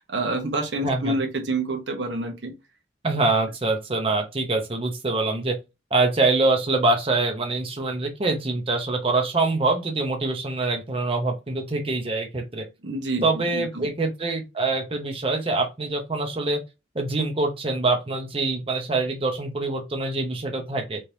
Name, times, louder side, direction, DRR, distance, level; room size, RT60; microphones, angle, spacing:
voice 1, 0.1-2.5 12.8-13.3 13.5-13.9, right 2 dB, 85° right, 1.0 m, -27 dB
voice 2, 0.8-1.2 3.0-5.6 5.9-12.6 13.2-16.6 16.9-21.0, right 3 dB, 30° right, 0.7 m, -24 dB
3.5 x 3.0 x 2.7 m
head